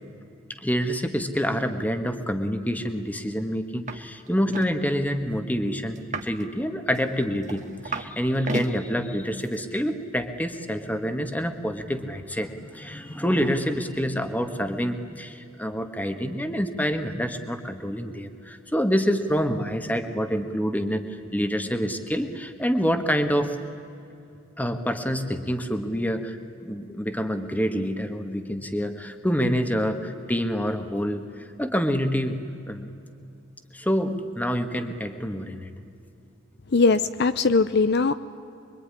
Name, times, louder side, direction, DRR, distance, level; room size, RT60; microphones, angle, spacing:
voice 1, 0.6-23.6 24.6-32.4 32.7-32.9 33.7-35.7, equal, 10° left, 7 dB, 1.6 m, -27 dB
sound 1, 3.9-4.0 4.3-4.7 6.0-6.4 6.9-8.1 8.4-8.7 9.4-9.6, right 3 dB, 35° right, 1.5 m, -33 dB
voice 2, 36.7-38.1, left 4 dB, 55° left, 13 dB, 0.7 m, -20 dB
25.0 x 23.5 x 10.0 m, 2.7 s
head